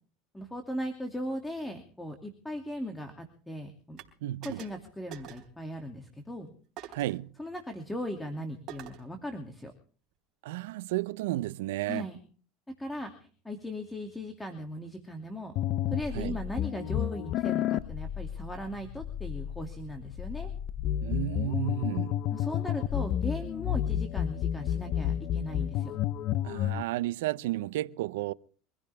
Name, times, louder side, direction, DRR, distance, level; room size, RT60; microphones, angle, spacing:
voice 1, 0.3-4.0 4.4-6.5 6.9-7.0 7.4-9.7 11.9-12.2 12.8-15.6 15.9-20.5 22.3-26.0, equal, 10° left, 2.6 m, -38 dB
sound 1, 4.0-4.1 4.4-4.8 5.1-5.5 6.8-7.2 8.7-9.1, right 11 dB, 45° right, 3.5 m, -45 dB
voice 2, 4.2-4.6 6.9-7.3 10.4-12.1 16.1-16.4 21.0-22.2 26.4-28.3, right 16 dB, 85° right, 0.7 m, -32 dB
sound 2, 15.6-26.8, left 11 dB, 50° left, 0.8 m, -31 dB
24.5 x 15.5 x 3.5 m
supercardioid pair, 115°, 0 cm